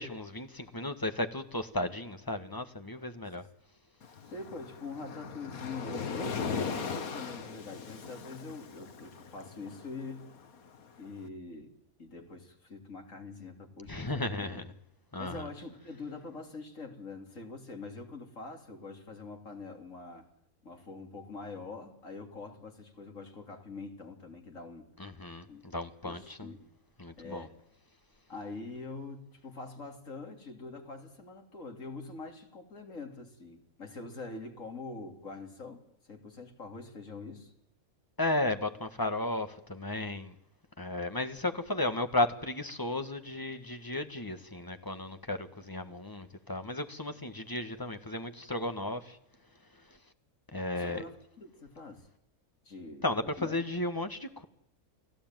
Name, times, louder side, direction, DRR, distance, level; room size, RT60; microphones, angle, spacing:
voice 1, 0.0-3.5 13.9-14.6 15.1-15.5 25.0-26.5 27.0-27.5 38.2-40.3 40.8-49.2 50.5-51.0 53.0-54.4, left 2 dB, 15° left, 1.6 m, -34 dB
Waves surf, 4.0-11.1, left 6 dB, 85° left, 1.9 m, -39 dB
voice 2, 4.3-10.3 11.0-11.7 12.0-14.7 15.2-20.3 20.6-24.9 25.5-25.6 26.0-26.7 27.2-27.5 28.3-37.5 50.7-52.1 52.6-53.6, left 3 dB, 65° left, 3.9 m, -44 dB
29.5 x 17.5 x 9.2 m
omnidirectional pair, 1.5 m